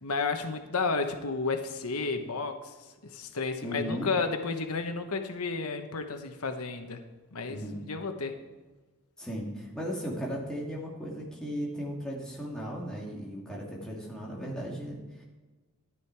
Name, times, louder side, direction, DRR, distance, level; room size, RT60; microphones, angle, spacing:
voice 1, 0.0-2.7 3.0-7.0 7.3-8.3, left 4 dB, 85° left, 6 dB, 1.1 m, -32 dB
voice 2, 3.6-4.1 7.5-7.8 9.2-15.2, equal, 5° left, -4 dB, 2.4 m, -36 dB
13.0 x 10.5 x 4.7 m, 1.2 s
head